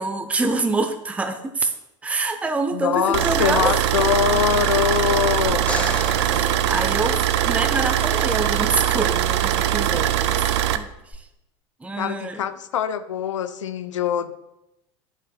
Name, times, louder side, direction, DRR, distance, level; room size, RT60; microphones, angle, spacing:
voice 1, 0.0-1.7 2.0-3.8 6.2-10.5 10.7-11.3 11.8-12.5, right 3 dB, 10° right, 8 dB, 0.6 m, -26 dB
voice 2, 2.7-5.7 12.0-14.3, left 9 dB, 75° left, 12 dB, 0.5 m, -23 dB
sound 1, 3.1-10.8, right 12 dB, 65° right, 0.5 m, -21 dB
sound 2, 5.5-7.8 11.1-11.2, left 2 dB, 10° left, 1.4 m, -32 dB
11.0 x 7.4 x 2.3 m, 0.88 s
figure-of-eight pair, 75°, 16 cm